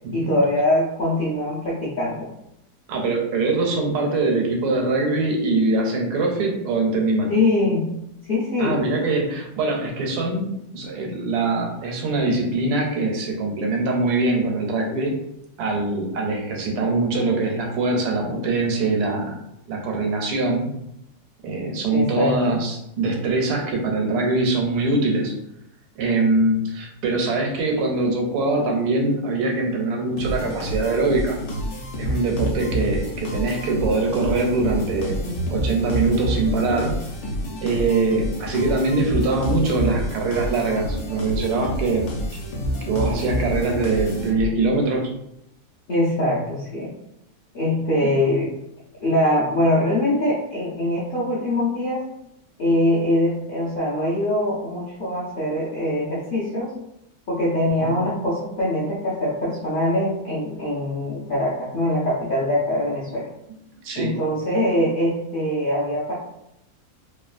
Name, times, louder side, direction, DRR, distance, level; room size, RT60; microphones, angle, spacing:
voice 1, 0.1-2.3 7.3-7.9 8.2-8.8 21.9-22.6 45.9-46.9 47.5-48.5 49.0-52.1 52.6-56.7 57.3-63.3 63.9-66.1, left 1 dB, 55° left, -8 dB, 0.6 m, -23 dB
voice 2, 2.9-7.3 8.6-15.1 15.6-19.3 19.7-20.7 21.4-25.3 26.0-31.4 32.0-35.2 35.5-36.9 37.6-42.1 42.9-45.1 48.0-48.1 57.8-58.0 63.8-64.1, right 3 dB, 85° right, 0 dB, 1.2 m, -23 dB
sound 1, 30.2-44.7, equal, 70° left, 1.1 m, -28 dB
3.0 x 2.3 x 2.4 m, 0.81 s
omnidirectional pair, 1.7 m